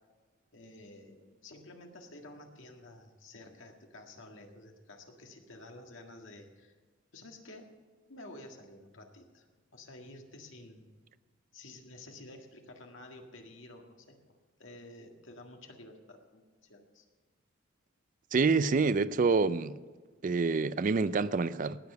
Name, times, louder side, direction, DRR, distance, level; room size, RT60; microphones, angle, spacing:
voice 1, 0.5-6.7 7.1-7.7 8.1-10.9 11.5-17.1, left 2 dB, 75° left, 1.8 m, -51 dB
voice 2, 18.3-19.8 20.2-21.8, right 4 dB, 40° right, 0.4 m, -27 dB
19.0 x 7.1 x 6.7 m
head